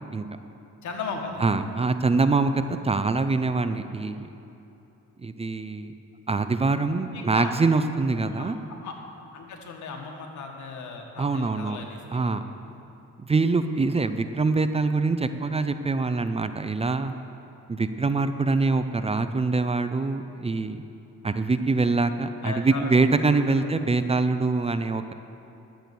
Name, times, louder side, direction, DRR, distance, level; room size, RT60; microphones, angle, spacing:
voice 1, 0.8-1.5 6.9-7.5 8.2-8.5 8.8-9.0 9.3-12.2 12.6-12.7 22.4-23.0 23.3-23.7, left 4 dB, 75° left, 2 dB, 1.7 m, -37 dB
voice 2, 1.4-4.3 5.2-5.9 6.3-8.6 11.2-11.8 12.1-12.4 13.2-17.1 17.7-20.8 21.2-25.1, right 3 dB, 20° right, 10 dB, 0.5 m, -24 dB
11.5 x 7.8 x 6.9 m, 2.9 s
cardioid pair, 90°, 30 cm